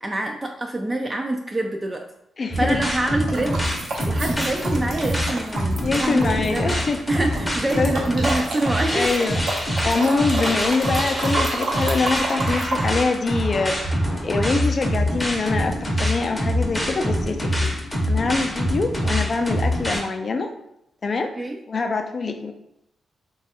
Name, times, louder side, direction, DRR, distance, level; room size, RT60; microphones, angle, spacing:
voice 1, 0.0-2.0 2.5-3.6 4.1-6.7 7.1-9.3 10.4-10.6 21.4-21.6, right 1 dB, 25° right, 2 dB, 0.3 m, -26 dB
voice 2, 2.4-2.8 5.8-7.0 7.8-7.9 8.9-9.4 9.8-17.7 18.1-20.5 21.0-21.3 21.7-22.5, left 4 dB, 50° left, 6 dB, 0.4 m, -24 dB
sound 1, 2.5-20.0, equal, 15° left, 0.7 m, -25 dB
sound 2, 3.0-6.9 7.1-12.9, right 2 dB, 75° right, 0.7 m, -30 dB
3.1 x 2.3 x 2.8 m, 0.79 s
cardioid pair, 60°, 0 cm